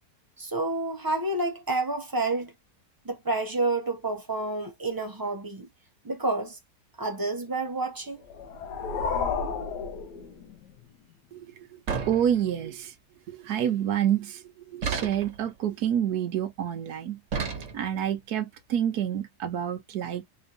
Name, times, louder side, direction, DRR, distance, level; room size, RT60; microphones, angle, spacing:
voice 1, 0.4-2.5 3.0-5.7 6.0-6.6 7.0-8.2, right 2 dB, 25° right, 0.5 m, -29 dB
sound 1, 8.2-10.8, left 5 dB, 75° left, 1.3 m, -32 dB
voice 2, 11.3-11.8 12.1-12.9 13.3-17.2 17.7-20.2, right 10 dB, 70° right, 1.2 m, -28 dB
sound 2, 11.9-12.8 14.8-15.5 17.3-18.1, right 5 dB, 50° right, 1.3 m, -32 dB
4.2 x 2.9 x 2.7 m
omnidirectional pair, 1.8 m